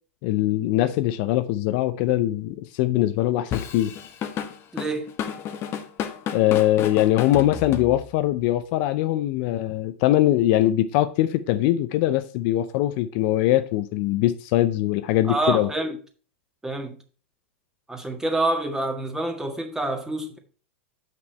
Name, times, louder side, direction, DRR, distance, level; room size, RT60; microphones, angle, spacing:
voice 1, 0.2-3.9 6.3-15.7, left 14 dB, 55° left, 0.5 m, -22 dB
Drum kit / Drum, 3.5-8.3, left 8 dB, 35° left, 1.0 m, -31 dB
voice 2, 4.7-5.1 15.3-16.0 16.6-17.0 17.9-20.4, right 2 dB, 10° right, 1.6 m, -27 dB
7.7 x 6.0 x 4.2 m
hypercardioid pair, 105°, 7 cm